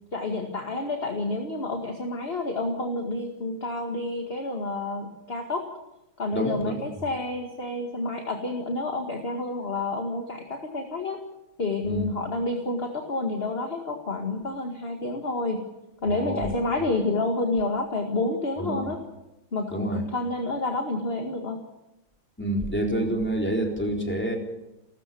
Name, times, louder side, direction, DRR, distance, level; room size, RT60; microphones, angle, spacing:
voice 1, 0.1-5.7 6.2-11.2 11.6-15.7 16.0-19.0 19.5-21.6, left 2 dB, 30° left, 4 dB, 2.1 m, -29 dB
voice 2, 6.3-6.7 11.8-12.1 16.1-16.5 18.6-18.8 19.7-20.0 22.4-24.4, right 1 dB, 5° left, 2 dB, 3.8 m, -27 dB
30.0 x 14.0 x 7.0 m, 0.95 s
omnidirectional pair, 2.4 m